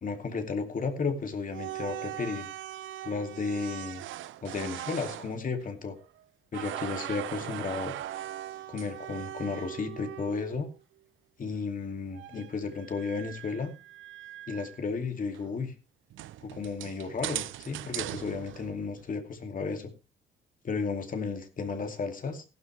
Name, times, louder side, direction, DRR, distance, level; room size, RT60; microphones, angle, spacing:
voice 1, 0.0-2.5 3.0-4.0 4.4-6.0 6.5-7.9 8.7-10.7 11.4-13.7 14.5-15.7 16.4-19.9 20.6-22.4, left 4 dB, 45° left, 6 dB, 2.6 m, -33 dB
sound 1, 1.4-6.2 6.5-10.8 12.1-14.8 15.3-15.4 16.1-19.1, right 13 dB, 75° right, 0.7 m, -40 dB
15.5 x 12.0 x 3.3 m, 0.30 s
cardioid pair, 90°, 20 cm